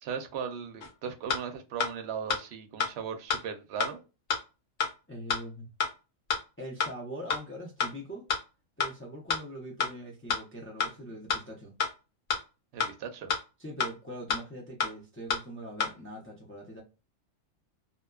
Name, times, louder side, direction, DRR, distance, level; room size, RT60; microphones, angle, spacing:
voice 1, 0.0-4.0 12.7-13.3, right 7 dB, 65° right, 0.8 m, -37 dB
sound 1, 0.8-0.9 1.3-1.4 1.8-1.9 2.3-2.4 2.8-2.9 3.3-3.4 3.8-3.9 4.3-4.4 4.8-4.9 5.3-5.4 5.8-5.9 6.3-6.4 6.8-6.9 7.3-7.4 7.8-7.9 8.3-8.4 8.8-8.9 9.3-9.4 9.8-9.9 10.3-10.4 10.8-10.9 11.3-11.4 11.8-11.9 12.3-12.4 12.8-12.9 13.3-13.4 13.8-13.9 14.3-14.4 14.8-14.9 15.3-15.4 15.8-15.9, left 6 dB, 85° left, 1.1 m, -28 dB
voice 2, 5.1-5.7 6.6-8.3 8.8-11.7 13.6-16.8, right 1 dB, 20° left, 0.3 m, -42 dB
2.6 x 2.1 x 2.2 m
omnidirectional pair, 1.3 m